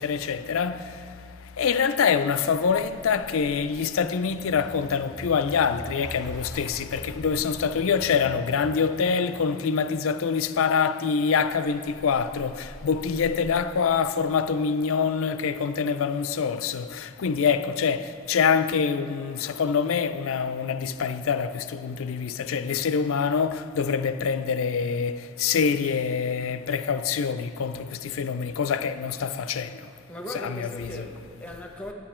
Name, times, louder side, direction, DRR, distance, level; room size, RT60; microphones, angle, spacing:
voice 1, 0.0-29.9 30.3-31.0, left 6 dB, 80° left, 0.4 m, -25 dB
sound 1, 2.5-8.8 11.4-13.5, equal, 15° right, 0.9 m, -43 dB
voice 2, 30.1-31.9, left 1 dB, 5° left, 0.9 m, -38 dB
11.0 x 9.7 x 4.3 m
head